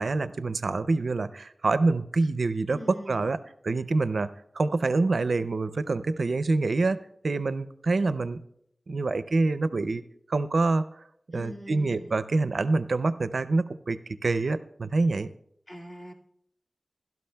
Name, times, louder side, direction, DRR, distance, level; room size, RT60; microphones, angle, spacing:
voice 1, 0.0-3.4 3.6-4.3 4.5-7.0 7.2-8.4 8.9-10.0 10.3-10.9 11.3-15.3, right 3 dB, 75° right, 13 dB, 0.4 m, -26 dB
voice 2, 2.7-3.2 11.3-12.2 15.7-16.1, equal, 35° left, -2 dB, 2.0 m, -42 dB
22.0 x 12.0 x 2.2 m, 0.73 s
wide cardioid pair, 60°, 0 cm